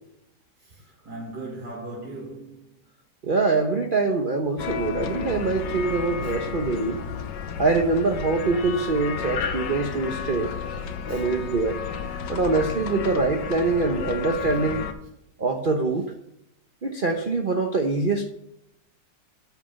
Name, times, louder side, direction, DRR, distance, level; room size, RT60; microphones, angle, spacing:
voice 1, 0.6-2.7 6.2-6.3 11.0-11.3 14.3-14.6, right 2 dB, 65° right, 2.6 m, -39 dB
voice 2, 3.2-7.0 7.6-10.5 11.1-11.8 12.3-14.8 15.4-16.0 16.8-18.3, right 3 dB, 40° right, 0.8 m, -24 dB
sound 1, 4.6-14.9, left 7 dB, 75° left, 1.6 m, -32 dB
8.9 x 6.3 x 7.9 m
omnidirectional pair, 2.0 m